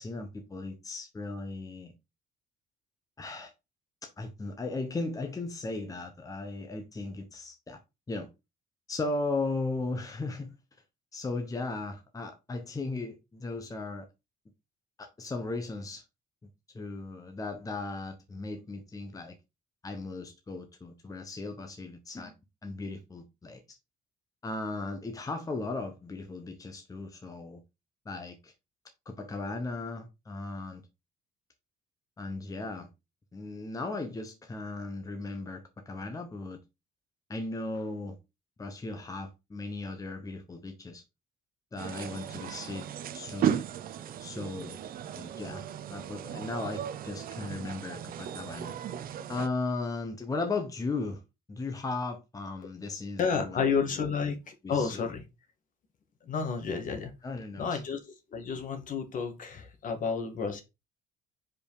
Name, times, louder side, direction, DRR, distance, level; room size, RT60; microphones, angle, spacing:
voice 1, 0.0-1.9 3.2-3.5 4.0-7.8 8.1-8.3 8.9-10.6 11.1-14.1 15.0-16.0 16.7-19.3 19.8-22.3 22.6-23.8 24.4-27.6 28.0-28.5 29.0-30.8 32.2-32.9 33.3-36.6 37.3-38.2 38.6-41.0 41.7-43.6 44.2-44.8 45.2-45.6 45.9-48.7 49.3-51.2 51.5-54.4 54.6-55.0 57.2-57.8, left 3 dB, 20° left, 1.2 m, -36 dB
sound 1, 41.8-49.5, right 10 dB, 60° right, 0.8 m, -36 dB
voice 2, 53.2-55.2 56.3-57.1 57.6-58.0 58.3-60.6, left 5 dB, 50° left, 2.0 m, -31 dB
5.2 x 5.0 x 4.9 m
cardioid pair, 110°, 17 cm